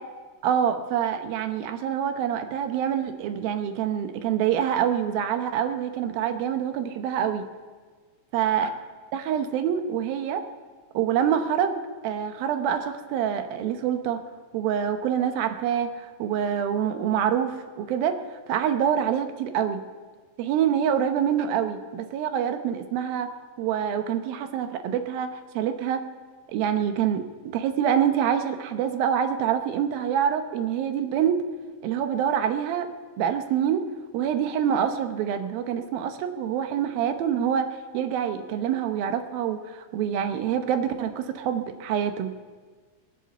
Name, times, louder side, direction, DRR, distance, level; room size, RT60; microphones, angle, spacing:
voice 1, 0.4-7.5 8.3-8.7 9.1-10.4 10.9-11.8 12.0-14.2 14.5-15.9 16.2-18.2 18.5-19.8 20.4-23.3 23.6-25.3 25.5-26.0 26.5-27.2 27.5-31.4 31.8-32.9 33.2-33.8 34.1-37.7 37.9-42.3, right 9 dB, 80° right, 8 dB, 2.8 m, -26 dB
22.0 x 8.3 x 6.9 m, 1.5 s
omnidirectional pair, 4.2 m